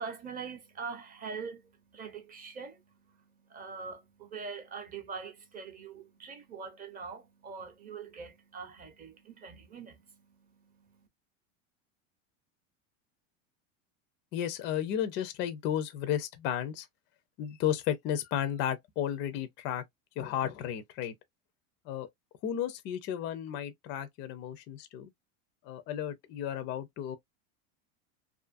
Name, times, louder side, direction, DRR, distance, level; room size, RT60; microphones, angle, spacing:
voice 1, 0.0-11.1, right 5 dB, 25° right, 0.6 m, -43 dB
voice 2, 14.3-16.9 17.4-19.8 20.2-21.1 21.9-22.1 22.4-25.1 25.6-27.2, left 10 dB, 30° left, 0.4 m, -33 dB
2.5 x 2.4 x 2.4 m
supercardioid pair, 145°, 38 cm